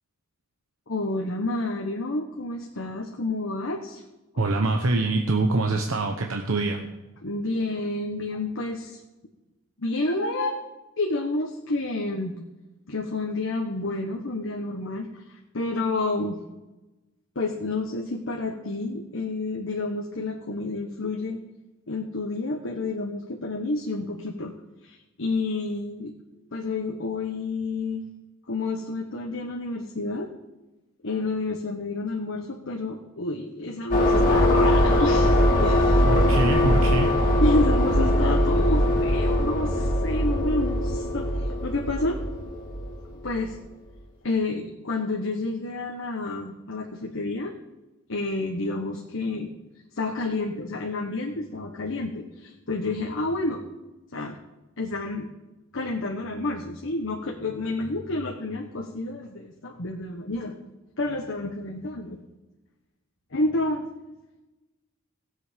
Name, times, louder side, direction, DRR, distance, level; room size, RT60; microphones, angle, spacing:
voice 1, 0.9-4.0 7.2-9.0 9.8-10.7 11.0-12.3 12.9-16.4 17.3-21.4 21.9-24.5 24.8-26.1 26.5-28.0 28.5-30.3 31.0-36.4 37.4-42.2 43.2-43.6 44.2-47.5 48.1-49.5 49.9-53.6 54.1-54.4 54.8-55.3 55.7-60.6 61.0-62.2 63.3-64.1, left 2 dB, 65° left, 1 dB, 1.2 m, -29 dB
voice 2, 4.4-6.9 36.1-37.1, right 2 dB, 85° right, 2 dB, 1.0 m, -24 dB
sound 1, 33.9-43.4, left 1 dB, 45° left, 2.8 m, -21 dB
17.0 x 8.0 x 5.2 m, 1.1 s
head